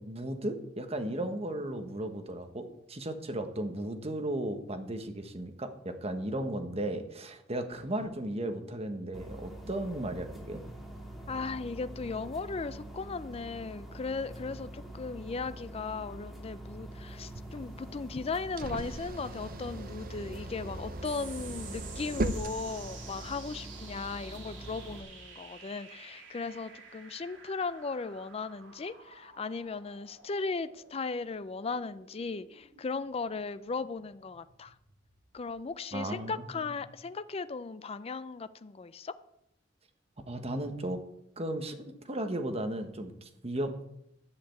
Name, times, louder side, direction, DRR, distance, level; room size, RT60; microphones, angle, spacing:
voice 1, 0.0-10.6 35.9-36.6 40.3-41.0 41.4-43.7, right 1 dB, 30° right, 1.3 m, -35 dB
sound 1, 9.1-25.0, right 1 dB, ahead, 1.9 m, -45 dB
voice 2, 11.3-34.7 35.3-39.1, left 4 dB, 30° left, 0.4 m, -37 dB
sound 2, 17.1-23.4, right 1 dB, 50° right, 0.7 m, -39 dB
sound 3, 21.0-35.8, right 5 dB, 70° right, 2.7 m, -51 dB
11.5 x 6.7 x 8.1 m
head